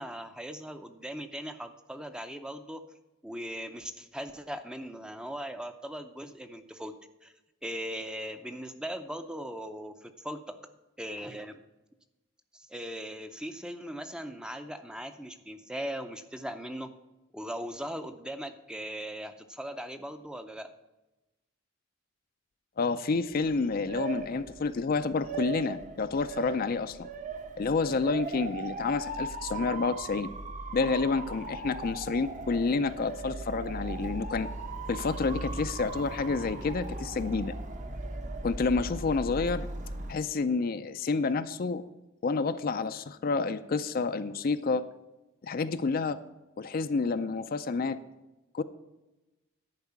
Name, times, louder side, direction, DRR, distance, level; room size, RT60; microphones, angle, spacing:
voice 1, 0.0-2.8 3.2-6.9 7.2-7.3 7.6-10.6 11.0-11.6 12.5-16.9 17.3-20.7, equal, 5° right, 9 dB, 0.5 m, -39 dB
voice 2, 22.8-27.1 27.6-30.3 30.7-34.5 34.9-37.5 38.4-39.7 40.1-41.8 42.2-44.8 45.4-46.2 46.6-48.0 48.5-48.6, left 4 dB, 45° left, 11 dB, 0.4 m, -29 dB
Motor vehicle (road) / Siren, 23.3-40.1, right 2 dB, 35° right, 0.9 m, -38 dB
10.5 x 4.8 x 8.2 m, 1.0 s
head